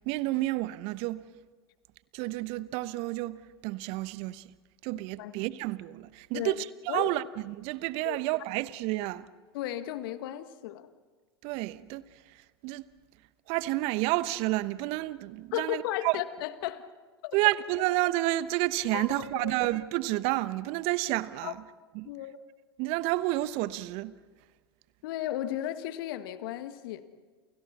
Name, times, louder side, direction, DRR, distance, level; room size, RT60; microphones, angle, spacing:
voice 1, 0.0-1.2 2.1-4.4 4.8-9.3 11.4-12.4 12.6-12.8 13.5-16.2 17.3-21.6 21.9-22.1 22.8-24.1, right 18 dB, 45° right, 1.0 m, -30 dB
voice 2, 9.5-10.9 15.5-16.8 17.2-17.4 18.9-19.6 21.4-21.5 22.1-22.4 25.0-27.0, left 13 dB, 55° left, 1.6 m, -35 dB
29.5 x 29.5 x 4.3 m
figure-of-eight pair, 90°, 14 cm